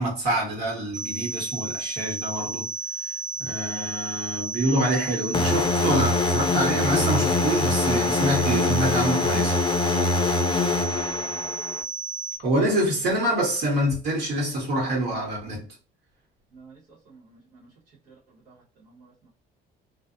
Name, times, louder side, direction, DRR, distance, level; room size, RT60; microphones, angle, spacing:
voice 1, 0.0-2.6 3.4-9.6 12.4-15.6, right 1 dB, 75° right, 1.3 m, -26 dB
sound 1, 0.9-12.4, right 4 dB, 5° left, 0.9 m, -33 dB
sound 2, 5.3-11.8, left 3 dB, 30° left, 0.4 m, -24 dB
voice 2, 17.0-17.7 18.1-19.3, right 4 dB, 55° right, 1.1 m, -51 dB
2.4 x 2.0 x 2.5 m
cardioid pair, 110°, 17 cm